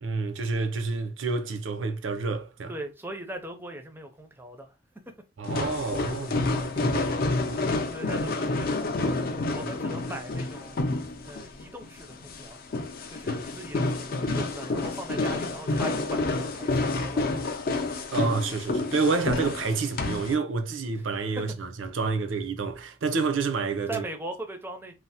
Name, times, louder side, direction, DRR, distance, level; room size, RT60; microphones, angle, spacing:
voice 1, 0.0-2.7 5.4-7.7 18.1-24.0, right 4 dB, 85° right, 0.5 m, -29 dB
voice 2, 2.7-5.3 7.9-10.9 11.2-12.6 13.1-13.9 14.2-17.6 21.0-21.1 21.4-21.5 22.1-22.2 23.9-24.9, right 1 dB, 10° right, 0.4 m, -40 dB
sound 1, 5.4-20.3, left 2 dB, 50° left, 0.5 m, -29 dB
3.1 x 2.0 x 2.7 m
head